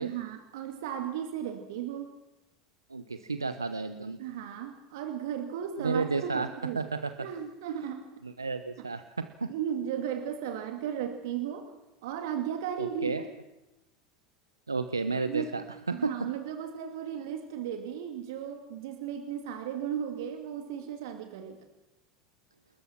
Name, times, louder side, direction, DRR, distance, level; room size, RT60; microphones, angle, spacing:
voice 1, 0.0-2.1 4.2-6.9 7.2-8.1 8.8-8.9 9.5-11.7 12.0-13.2 15.2-21.6, right 9 dB, 65° right, 5 dB, 2.5 m, -35 dB
voice 2, 2.9-4.2 5.8-6.5 6.8-7.1 8.2-9.5 12.8-13.2 14.7-15.6 15.9-16.1, right 4 dB, 90° right, 10 dB, 1.0 m, -32 dB
29.5 x 21.0 x 6.0 m, 0.98 s
figure-of-eight pair, 80°, 2 cm